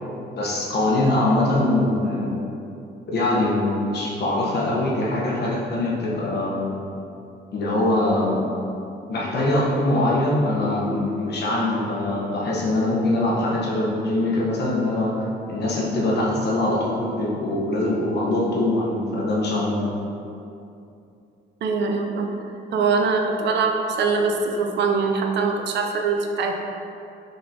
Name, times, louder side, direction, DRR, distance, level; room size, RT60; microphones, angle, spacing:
voice 1, 0.4-2.4 3.1-6.6 7.5-8.4 9.1-19.9, left 1 dB, 55° left, -4 dB, 0.9 m, -23 dB
voice 2, 21.6-22.3 22.7-26.5, right 4 dB, 60° right, 3 dB, 0.5 m, -22 dB
3.9 x 3.7 x 2.7 m, 2.7 s
cardioid pair, 90°, 20 cm